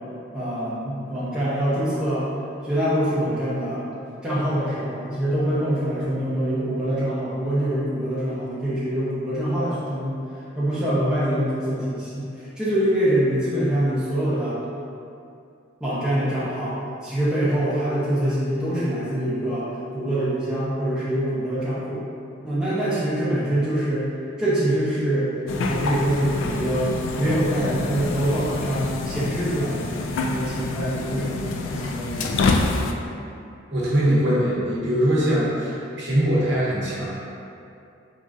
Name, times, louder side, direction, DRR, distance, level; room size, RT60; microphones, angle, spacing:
voice 1, 0.3-2.3 2.6-3.8 4.2-10.2 10.6-14.6 15.8-16.8 17.0-22.0 22.4-24.1 24.4-25.3 25.7-32.9, right 1 dB, 5° right, -11 dB, 0.7 m, -24 dB
sound 1, 25.5-32.9, left 3 dB, 80° left, 0.3 m, -27 dB
voice 2, 33.7-37.1, equal, 60° right, -7 dB, 0.9 m, -22 dB
3.7 x 3.6 x 2.5 m, 2.6 s
head